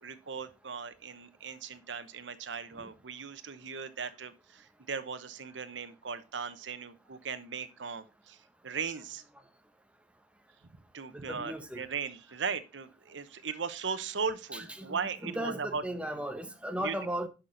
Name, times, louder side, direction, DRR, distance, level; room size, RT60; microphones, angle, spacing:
voice 1, 0.0-8.4 8.6-9.2 10.9-15.8 16.8-17.0, right 5 dB, 75° right, 0.9 m, -38 dB
voice 2, 11.1-11.8 14.8-15.0 15.2-17.3, right 1 dB, 5° right, 1.0 m, -36 dB
10.5 x 5.9 x 3.9 m
head